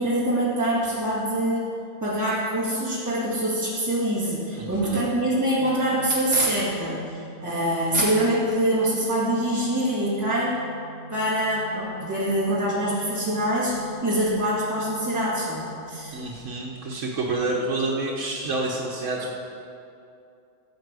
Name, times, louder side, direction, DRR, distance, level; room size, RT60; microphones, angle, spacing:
voice 1, 0.0-1.7 2.0-7.1 7.4-10.5 11.1-13.7 14.0-16.2, right 1 dB, 15° right, -9 dB, 2.2 m, -24 dB
voice 2, 4.6-5.0 16.1-19.3, right 2 dB, 85° right, -3 dB, 1.5 m, -28 dB
Organ, 5.6-16.5, right 1 dB, 75° left, 2.0 m, -43 dB
14.0 x 5.2 x 8.2 m, 2.6 s
omnidirectional pair, 1.2 m